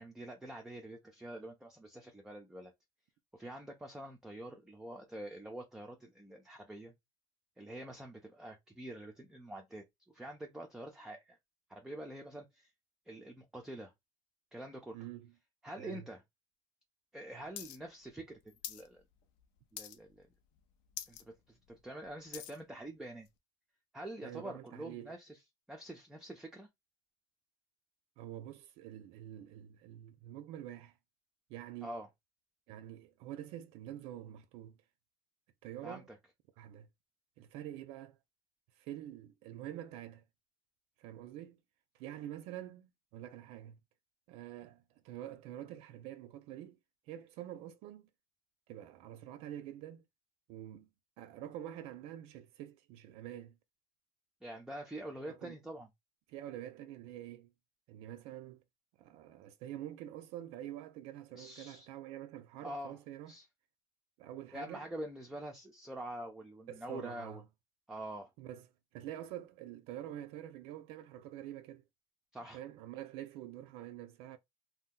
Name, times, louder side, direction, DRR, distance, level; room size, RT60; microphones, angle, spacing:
voice 1, 0.0-2.7 3.3-6.9 7.6-11.4 11.7-12.7 13.1-13.9 14.5-15.0 15.6-16.2 17.1-19.0 19.7-20.3 21.1-23.3 23.9-25.4 25.7-26.7 31.8-32.1 35.8-36.2 54.4-55.9 61.3-61.9 62.6-62.9 63.3-63.5 64.5-67.4 67.9-68.3 72.3-72.6, right 1 dB, 5° right, 0.5 m, -46 dB
voice 2, 14.9-15.3 15.8-16.1 24.2-25.1 28.2-30.9 31.5-32.0 32.7-34.8 35.6-36.1 36.6-36.9 37.4-38.2 38.8-40.2 41.0-41.6 41.9-43.8 44.3-46.8 47.1-48.1 48.7-50.0 50.5-50.9 51.2-53.6 55.3-55.6 56.3-57.5 57.9-58.6 59.0-63.3 64.2-64.9 66.7-67.4 68.4-68.7 68.9-71.8 72.5-74.4, right 12 dB, 75° right, 0.4 m, -46 dB
sound 1, 17.6-17.8 18.0-18.9 19.2-19.4 19.8-20.2 20.6-20.7 20.9-21.2 21.7-22.6 23.3-23.4, left 11 dB, 90° left, 0.6 m, -45 dB
2.7 x 2.2 x 3.6 m
cardioid pair, 140°, 10 cm